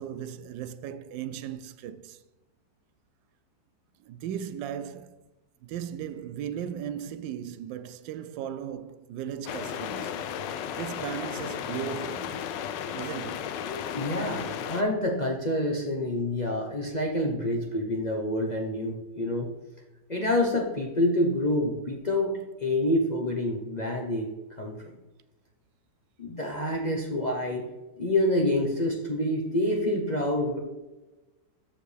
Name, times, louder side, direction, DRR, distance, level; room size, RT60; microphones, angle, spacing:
voice 1, 0.0-2.2 4.1-5.2 5.6-10.2 10.7-12.4 12.9-13.5, right 9 dB, 85° right, 1.3 m, -37 dB
sound 1, 9.5-14.8, left 8 dB, 80° left, 1.3 m, -34 dB
voice 2, 13.7-19.5 20.1-22.3 22.6-24.3 24.6-24.7 26.2-27.6 28.0-30.6, left 1 dB, 35° left, 0.8 m, -27 dB
13.5 x 4.8 x 3.4 m
omnidirectional pair, 1.9 m